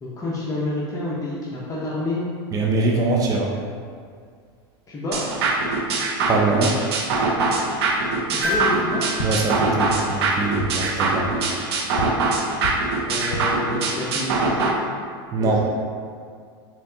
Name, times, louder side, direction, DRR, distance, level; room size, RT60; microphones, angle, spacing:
voice 1, 0.0-2.2 4.9-5.2 8.4-9.0 13.0-14.7 15.4-15.6, left 2 dB, 25° left, -7 dB, 0.8 m, -28 dB
voice 2, 2.5-3.5 6.3-6.8 9.2-11.3 15.3-15.6, right 3 dB, 25° right, -1 dB, 0.5 m, -22 dB
sound 1, 5.1-14.7, right 3 dB, 75° right, 0.6 m, -23 dB
sound 2, 8.4-10.7 12.8-12.9, equal, 50° right, 1.1 m, -30 dB
sound 3, 8.5-8.6 9.2-9.3 9.9-10.0 10.5-10.7 11.2-11.3 11.9-12.0 12.6-12.7 13.2-13.4, left 3 dB, 70° left, 0.8 m, -30 dB
4.4 x 3.7 x 2.7 m, 2.2 s
hypercardioid pair, 105°, 13 cm